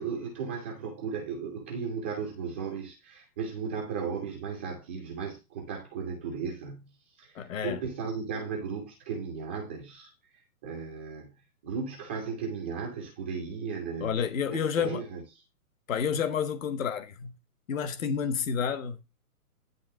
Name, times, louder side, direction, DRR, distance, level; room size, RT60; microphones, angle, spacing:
voice 1, 0.0-14.1 14.5-15.2, right 5 dB, 10° right, 0.5 m, -36 dB
voice 2, 7.3-7.8 14.0-15.0 15.9-17.3 17.7-19.0, left 7 dB, 60° left, 1.4 m, -30 dB
10.5 x 3.5 x 6.3 m
hypercardioid pair, 150°, 46 cm